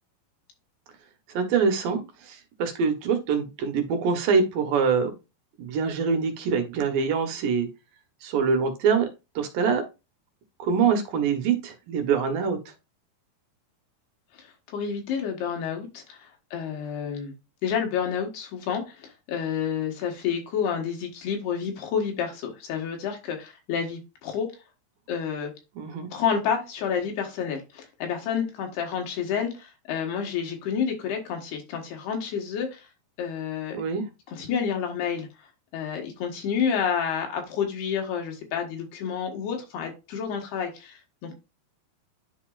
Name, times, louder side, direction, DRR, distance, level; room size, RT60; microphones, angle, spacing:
voice 1, 1.3-5.1 5.6-7.7 8.2-9.1 9.4-9.8 10.6-12.6 25.8-26.1 33.7-34.0, right 6 dB, 70° right, 6 dB, 2.7 m, -24 dB
voice 2, 14.3-17.3 17.6-24.5 25.1-25.5 26.1-32.9 33.2-33.8 34.3-35.3 35.7-41.3, left 7 dB, 85° left, 2 dB, 3.6 m, -29 dB
11.0 x 4.2 x 2.5 m, 0.26 s
omnidirectional pair, 4.4 m